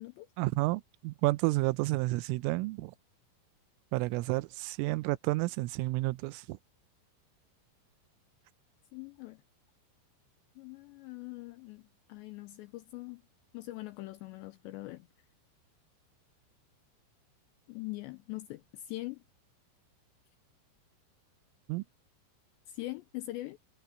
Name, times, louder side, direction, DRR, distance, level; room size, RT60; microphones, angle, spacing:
voice 1, 0.4-2.9 3.9-6.6 21.7-21.8, right 21 dB, 85° right, 3.1 m, -30 dB
voice 2, 8.9-9.4 10.6-13.2 13.5-15.1 17.7-19.2 22.7-23.6, left 18 dB, 85° left, 2.5 m, -42 dB
omnidirectional pair, 5.8 m